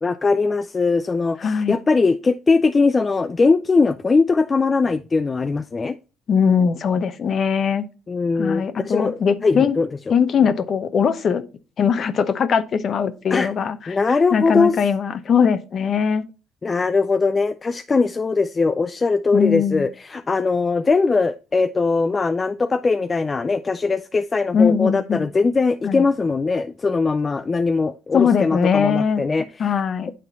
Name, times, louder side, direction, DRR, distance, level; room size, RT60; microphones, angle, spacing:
voice 1, 0.0-6.0 8.1-9.9 13.3-13.5 13.9-14.7 16.6-29.7, left 4 dB, 25° left, 0.4 m, -20 dB
voice 2, 1.4-1.7 6.3-7.9 8.4-9.8 10.1-11.4 11.8-16.3 19.3-19.8 24.5-25.3 25.8-26.0 28.1-29.2 29.6-30.1, left 6 dB, 50° left, 0.8 m, -20 dB
9.2 x 3.8 x 4.1 m
cardioid pair, 95°, 0 cm